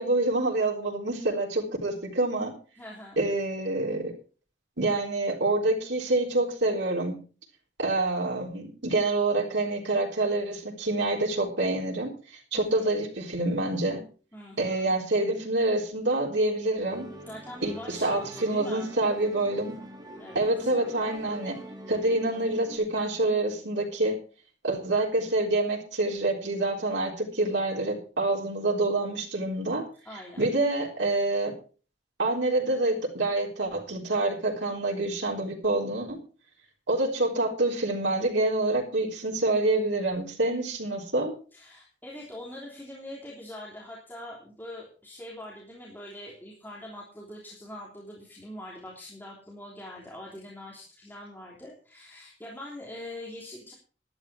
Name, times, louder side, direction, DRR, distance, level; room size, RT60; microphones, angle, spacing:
voice 1, 0.0-2.5 3.2-4.1 4.8-7.2 7.8-14.0 14.6-17.1 17.6-19.7 20.3-21.6 21.9-24.2 24.6-29.8 30.4-31.5 32.2-36.2 36.9-41.3, right 2 dB, 85° right, -2 dB, 3.9 m, -27 dB
voice 2, 2.8-3.2 12.5-12.9 14.3-15.0 17.3-18.9 20.2-20.7 30.0-30.5 41.5-53.7, left 1 dB, 10° left, -3 dB, 3.2 m, -43 dB
Musical instrument, 16.9-22.8, right 1 dB, 25° right, 2.9 m, -45 dB
12.0 x 12.0 x 4.8 m, 0.38 s
head